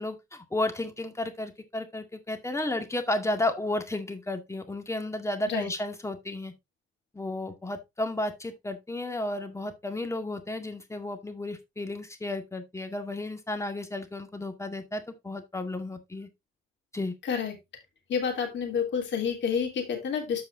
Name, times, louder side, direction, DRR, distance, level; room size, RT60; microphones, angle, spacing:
voice 1, 0.0-6.5 7.1-16.3 16.9-17.1, left 2 dB, 15° left, 1.9 m, -33 dB
voice 2, 17.2-17.5 18.1-20.4, left 7 dB, 65° left, 3.1 m, -29 dB
14.0 x 4.8 x 2.6 m
cardioid pair, 90°, 20 cm